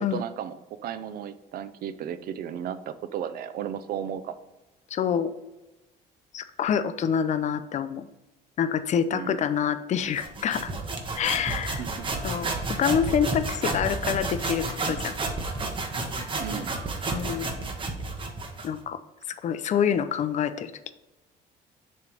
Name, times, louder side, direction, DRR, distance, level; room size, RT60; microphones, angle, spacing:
voice 1, 0.1-4.4 9.1-9.4 11.8-12.1 16.4-16.7, right 9 dB, 60° right, 12 dB, 0.5 m, -34 dB
voice 2, 4.9-5.3 6.3-8.1 8.6-10.7 11.2-11.8 12.2-15.2 17.1-17.5 18.6-19.0 19.3-20.9, left 8 dB, 45° left, 12 dB, 0.5 m, -27 dB
sound 1, 10.2-18.8, right 3 dB, 30° right, 1.1 m, -31 dB
6.8 x 3.2 x 5.2 m, 1.0 s
cardioid pair, 110°, 17 cm